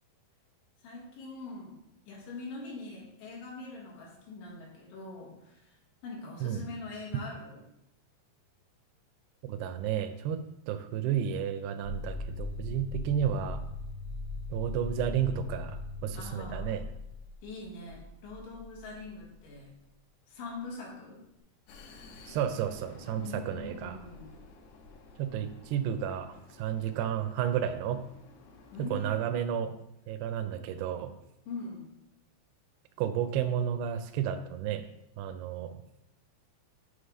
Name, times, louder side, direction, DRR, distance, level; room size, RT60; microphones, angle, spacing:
voice 1, 0.8-1.8 2.1-5.8 6.0-7.6 16.2-16.7 17.4-19.7 20.3-21.2 23.2-24.3 28.7-29.5 31.5-31.8, left 3 dB, 90° left, -3 dB, 4.2 m, -43 dB
voice 2, 9.4-13.6 14.5-16.9 22.3-24.0 25.2-28.0 28.8-29.8 30.1-31.2 33.0-34.9 35.2-35.8, right 9 dB, 85° right, 9 dB, 2.3 m, -32 dB
sound 1, 11.8-19.5, left 3 dB, 60° right, 0.5 m, -40 dB
Vehicle, 21.7-28.9, left 3 dB, 75° left, 2.6 m, -53 dB
9.5 x 3.3 x 5.3 m, 0.84 s
omnidirectional pair, 5.1 m